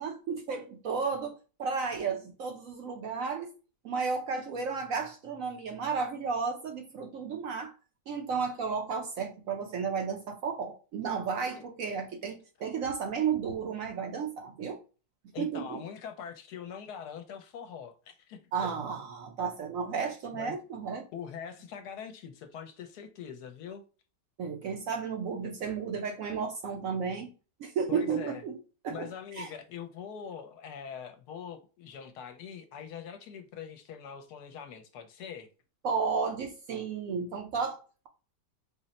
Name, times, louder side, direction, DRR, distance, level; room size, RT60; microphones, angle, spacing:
voice 1, 0.0-3.5 3.8-7.7 8.1-14.8 15.4-15.8 18.5-21.1 24.4-27.3 27.6-28.6 28.8-29.1 29.4-29.5 35.8-38.1, right 5 dB, 65° right, 0.9 m, -33 dB
voice 2, 15.3-18.7 20.3-20.6 21.1-23.8 27.9-28.4 28.9-35.5, left 7 dB, 75° left, 1.1 m, -43 dB
3.9 x 2.1 x 4.0 m
omnidirectional pair, 1.8 m